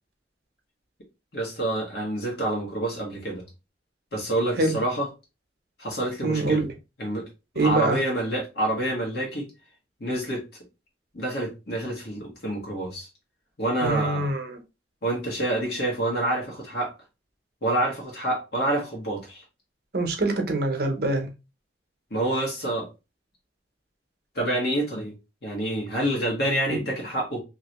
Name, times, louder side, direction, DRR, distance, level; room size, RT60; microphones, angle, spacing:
voice 1, 1.3-3.4 4.1-5.1 5.8-6.6 7.0-7.3 7.6-9.5 10.0-10.4 11.1-13.1 13.6-14.3 15.0-16.9 17.6-19.4 22.1-22.9 24.3-25.1 25.4-27.4, right 1 dB, 60° left, 1.2 m, -27 dB
voice 2, 6.2-6.7 7.6-8.0 13.8-14.6 19.9-21.3 26.7-26.8, right 2 dB, 60° right, 0.8 m, -24 dB
2.9 x 2.7 x 2.9 m
head